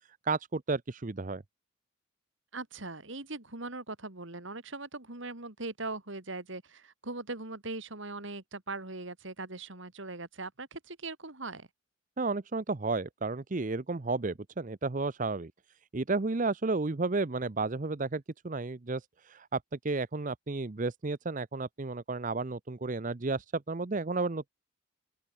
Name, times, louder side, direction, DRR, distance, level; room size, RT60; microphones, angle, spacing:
voice 1, 0.2-1.4 12.2-15.5 15.9-24.5, right 3 dB, 40° right, 0.7 m, -32 dB
voice 2, 2.5-11.7, right 2 dB, 65° right, 2.9 m, -40 dB
open air
head